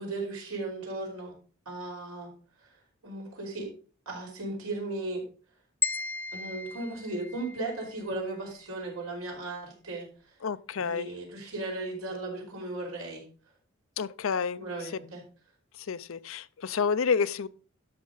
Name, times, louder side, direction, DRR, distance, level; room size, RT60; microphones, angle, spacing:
voice 1, 0.0-1.3 1.6-2.3 3.0-3.7 4.0-5.3 6.3-10.1 10.8-13.2 14.5-15.2, right 2 dB, 80° right, 4.9 m, -36 dB
sound 1, 5.8-8.0, left 5 dB, 10° left, 0.3 m, -35 dB
voice 2, 10.4-11.1 14.0-14.6 15.8-17.5, left 6 dB, 65° left, 0.5 m, -29 dB
12.5 x 6.5 x 4.0 m
head